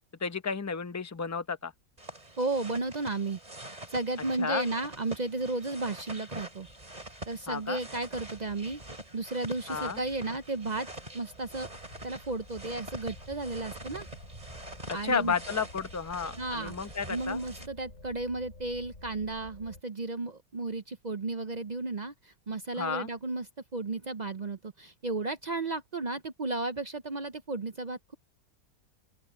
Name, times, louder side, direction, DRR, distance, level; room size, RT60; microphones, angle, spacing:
voice 1, 0.2-1.7 4.4-4.7 7.5-7.8 9.7-10.0 15.0-17.4 22.8-23.1, left 5 dB, 15° left, 0.6 m, -32 dB
sound 1, 2.0-17.7, right 1 dB, 25° right, 3.4 m, -45 dB
voice 2, 2.4-3.4 3.7-6.7 7.3-8.8 9.1-10.9 11.1-11.7 12.0-14.1 14.9-15.4 16.4-16.7 17.1-28.1, right 2 dB, 45° right, 0.5 m, -34 dB
sound 2, 9.9-19.8, left 2 dB, 50° left, 4.8 m, -51 dB
open air
omnidirectional pair, 1.7 m